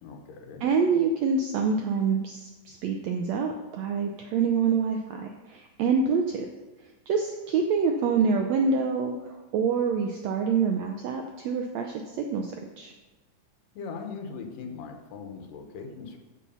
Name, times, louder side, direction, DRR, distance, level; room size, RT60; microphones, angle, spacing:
voice 1, 0.0-0.6 13.7-16.2, left 5 dB, 80° left, 5 dB, 2.8 m, -40 dB
voice 2, 0.6-6.4 7.1-9.1 9.5-11.9 12.3-12.9, right 5 dB, 80° right, 3 dB, 1.5 m, -26 dB
14.0 x 4.9 x 5.6 m, 1.2 s
omnidirectional pair, 3.9 m